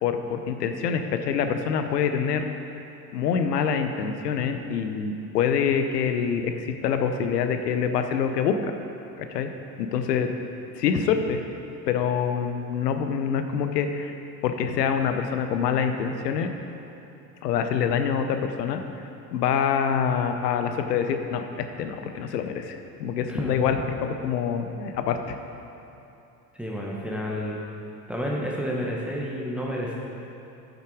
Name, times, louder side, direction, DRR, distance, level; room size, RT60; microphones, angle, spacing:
voice 1, 0.0-2.4 3.1-8.6 9.2-9.5 9.8-10.3 10.7-11.4 11.9-14.1 14.4-16.5 17.4-18.8 19.3-21.4 21.8-25.3, left 7 dB, 80° left, 7 dB, 0.8 m, -25 dB
voice 2, 23.3-23.8 26.6-27.6 28.1-29.9, equal, ahead, -4 dB, 1.3 m, -30 dB
9.9 x 6.6 x 4.9 m, 2.9 s
hypercardioid pair, 75°, 47 cm